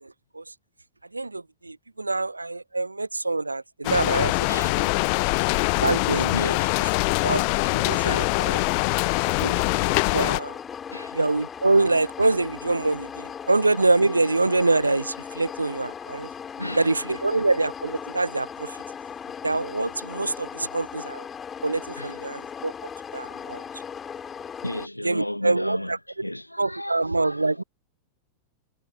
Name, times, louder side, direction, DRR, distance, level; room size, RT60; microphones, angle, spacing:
voice 1, 0.0-0.4 1.1-4.5 4.8-4.9 5.8-6.3 7.2-8.6 9.4-9.6 10.1-10.6 11.1-16.3 16.8-18.8 19.4-21.2 21.6-22.7 23.1-23.6 25.0-26.0 26.6-27.6, right 2 dB, 80° right, 0.5 m, -25 dB
sound 1, 3.8-10.4, left 40 dB or more, 45° left, 0.4 m, -23 dB
voice 2, 4.5-5.5 6.3-6.9 8.0-8.8 10.9-11.2 13.2-13.3 16.6-16.9 22.0-22.3 24.6-26.0 26.2-27.6, left 1 dB, 90° left, 1.2 m, -34 dB
sound 2, 8.1-24.9, left 7 dB, 20° left, 2.8 m, -38 dB
figure-of-eight pair, 90°, 0 cm